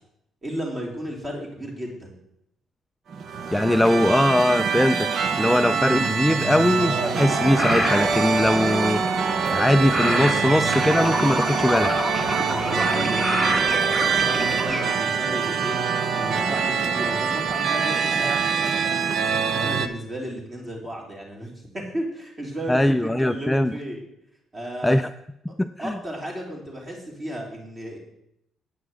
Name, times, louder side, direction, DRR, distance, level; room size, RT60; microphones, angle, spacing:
voice 1, 0.4-2.1 12.3-15.8 16.1-18.8 19.5-24.0 24.5-25.0 25.8-28.0, equal, 30° right, -1 dB, 3.6 m, -34 dB
sound 1, 3.1-19.9, right 6 dB, 55° right, 0.8 m, -24 dB
voice 2, 3.5-5.1 5.4-12.0 22.7-23.7 24.8-25.1 25.6-26.0, left 1 dB, 5° left, 9 dB, 0.3 m, -21 dB
sound 2, 6.8-14.8, equal, 15° right, 1.8 m, -28 dB
9.4 x 5.9 x 7.9 m, 0.78 s
cardioid pair, 110°, 0 cm